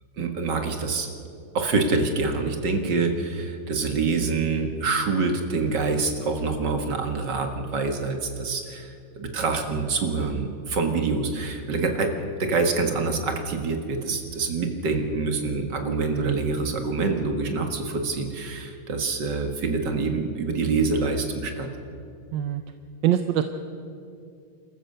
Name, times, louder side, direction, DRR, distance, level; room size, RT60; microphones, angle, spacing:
voice 1, 0.2-1.1 1.5-21.7, right 4 dB, 70° right, 5 dB, 2.4 m, -26 dB
voice 2, 16.1-16.5 22.3-22.6 23.0-23.4, right 11 dB, 85° right, 8 dB, 1.5 m, -24 dB
28.5 x 14.0 x 6.7 m, 2.5 s
omnidirectional pair, 2.0 m